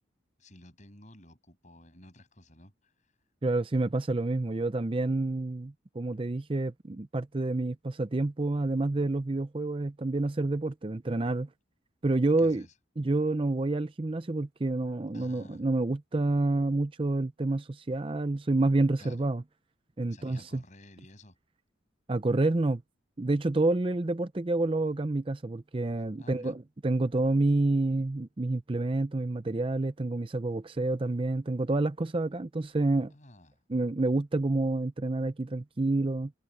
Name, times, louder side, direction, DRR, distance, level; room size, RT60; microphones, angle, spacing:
voice 1, 0.4-3.1 12.4-12.7 15.1-15.6 19.0-19.3 20.1-21.4 26.2-26.6 33.1-33.6, left 1 dB, 35° left, 7.7 m, -53 dB
voice 2, 3.4-11.5 12.0-12.6 13.0-19.4 20.0-20.6 22.1-22.8 23.2-33.1 33.7-36.3, right 2 dB, 25° right, 0.5 m, -28 dB
head